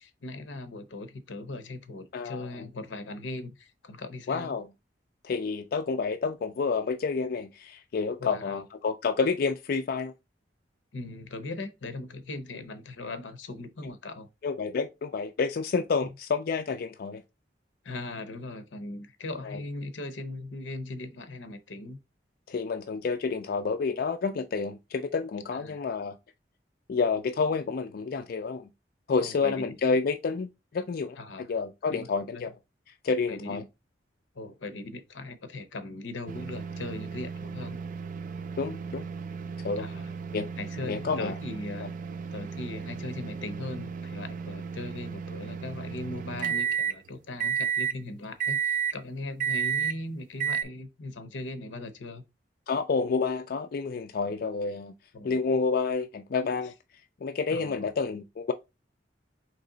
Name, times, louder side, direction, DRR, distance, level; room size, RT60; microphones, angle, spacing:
voice 1, 0.0-4.6 8.2-8.6 10.9-14.3 17.8-22.0 25.5-25.9 29.2-29.6 31.2-31.5 31.9-32.1 32.3-32.4 33.3-33.6 34.3-37.8 39.8-40.1 40.6-41.9 42.3-52.2 55.1-55.5 57.5-57.9, left 2 dB, 90° left, 0.8 m, -39 dB
voice 2, 2.1-2.5 4.3-4.7 5.2-10.1 14.4-17.2 19.4-19.6 22.5-26.1 26.9-28.7 29.1-30.5 30.7-31.2 31.5-32.5 33.0-33.6 38.6-39.1 39.6-39.9 40.3-40.5 40.8-41.3 41.8-41.9 52.7-54.9 55.2-56.7 57.2-58.5, left 4 dB, 55° left, 0.4 m, -29 dB
sound 1, 36.3-47.0 47.4-48.0 48.4-49.0 49.4-50.0 50.4-50.6, right 7 dB, 45° right, 0.3 m, -33 dB
4.1 x 3.0 x 3.8 m
head